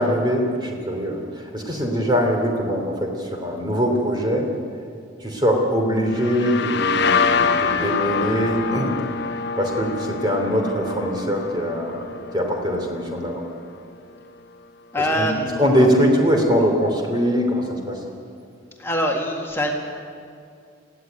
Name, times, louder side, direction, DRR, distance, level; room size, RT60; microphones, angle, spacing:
voice 1, 0.0-4.5 5.2-9.0 9.6-12.0 12.3-13.4 15.2-15.3 15.6-18.0, equal, 20° right, 2 dB, 3.0 m, -22 dB
sound 1, 6.1-13.7, left 5 dB, 50° left, 0.9 m, -25 dB
voice 2, 14.9-15.9 18.8-19.7, equal, 10° left, 0 dB, 1.9 m, -24 dB
20.0 x 15.5 x 9.2 m, 2.3 s
head